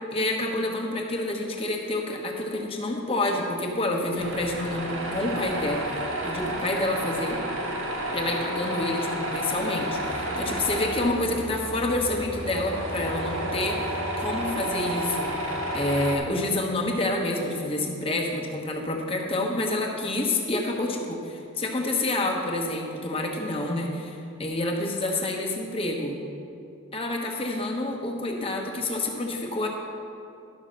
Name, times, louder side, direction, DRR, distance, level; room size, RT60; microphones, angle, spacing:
voice 1, 0.1-7.4 8.1-15.3 15.7-26.2 26.9-29.7, left 2 dB, 25° left, 0 dB, 1.1 m, -28 dB
Tools, 4.2-16.2, right 1 dB, 85° right, 1.7 m, -31 dB
11.5 x 5.7 x 6.4 m, 2.6 s
head